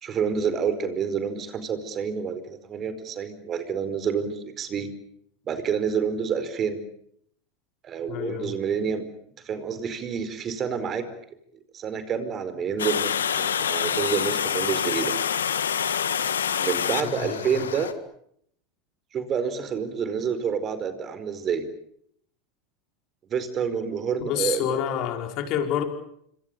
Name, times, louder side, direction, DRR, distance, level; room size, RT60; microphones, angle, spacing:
voice 1, 0.0-4.9 5.5-6.8 7.8-9.0 9.4-11.0 11.7-15.1 16.6-17.9 19.1-21.6 23.3-25.1, right 6 dB, 35° right, 11 dB, 4.7 m, -28 dB
voice 2, 8.1-8.5 17.0-17.7 24.2-25.8, left 10 dB, 55° left, 5 dB, 5.2 m, -28 dB
Water, 12.8-17.9, left 8 dB, 90° left, 1.9 m, -26 dB
27.0 x 25.5 x 7.0 m, 0.70 s
hypercardioid pair, 95°, 0 cm